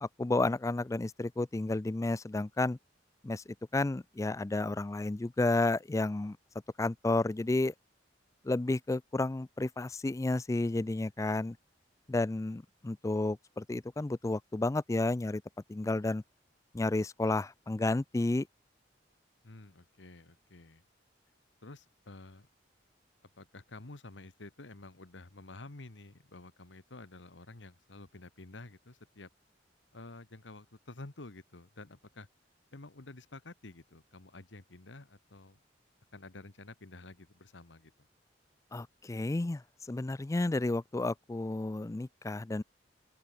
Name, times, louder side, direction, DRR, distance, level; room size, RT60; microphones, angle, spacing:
voice 1, 0.0-2.8 3.2-6.4 6.8-7.7 8.4-11.6 12.1-15.4 15.7-16.2 16.7-18.5 38.7-39.6 39.9-42.6, left 2 dB, 15° left, 0.4 m, -31 dB
voice 2, 19.4-20.8 21.6-22.5 23.4-29.3 29.9-32.3 32.7-35.6 36.1-37.9, left 2 dB, 85° left, 1.6 m, -50 dB
open air
head